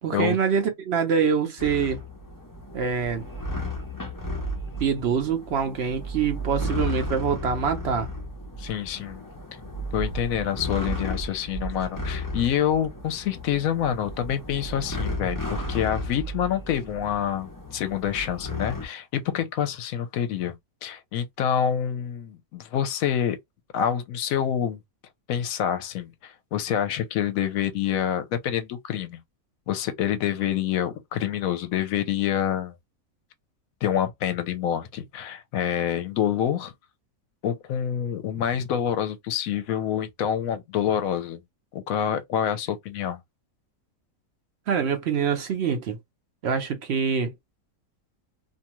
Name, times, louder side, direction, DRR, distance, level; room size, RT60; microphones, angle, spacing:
voice 1, 0.0-2.0 2.7-3.3 4.8-8.1 44.7-46.0 46.4-47.3, right 6 dB, 60° right, 0.7 m, -25 dB
sound 1, 1.6-18.9, left 1 dB, 25° left, 0.4 m, -34 dB
voice 2, 8.6-9.2 9.9-20.5 20.8-23.4 23.7-24.8 25.3-29.2 29.7-32.7 33.8-36.7 37.4-41.4 41.7-43.2, left 9 dB, 75° left, 1.0 m, -27 dB
2.7 x 2.3 x 2.9 m
omnidirectional pair, 1.6 m